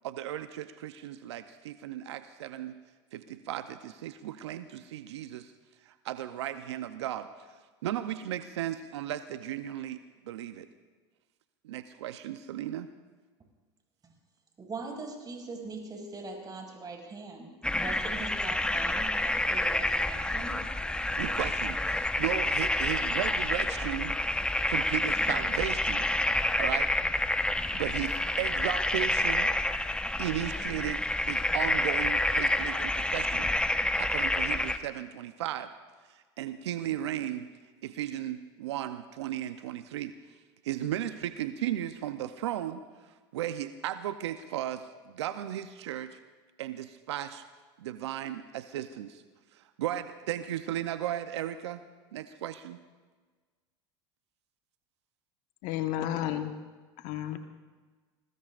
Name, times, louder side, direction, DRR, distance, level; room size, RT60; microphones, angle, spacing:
voice 1, 0.0-2.8 3.1-5.5 5.8-7.3 7.8-10.0 10.3-10.7 11.6-12.9 21.0-24.2 24.7-26.1 26.6-26.9 27.7-29.5 30.2-33.5 34.0-35.7 36.4-37.5 37.8-40.1 40.6-42.8 43.3-46.2 46.6-47.4 47.8-49.2 49.5-51.8 52.1-52.8, right 12 dB, 80° right, 11 dB, 0.7 m, -35 dB
voice 2, 14.6-20.6, right 3 dB, 30° right, 0 dB, 6.3 m, -41 dB
sound 1, 17.6-34.8, left 1 dB, 5° left, 1.1 m, -28 dB
voice 3, 55.6-56.5 57.0-57.4, left 11 dB, 60° left, 7 dB, 1.3 m, -31 dB
26.5 x 21.5 x 2.5 m, 1.4 s
hypercardioid pair, 85°, 14 cm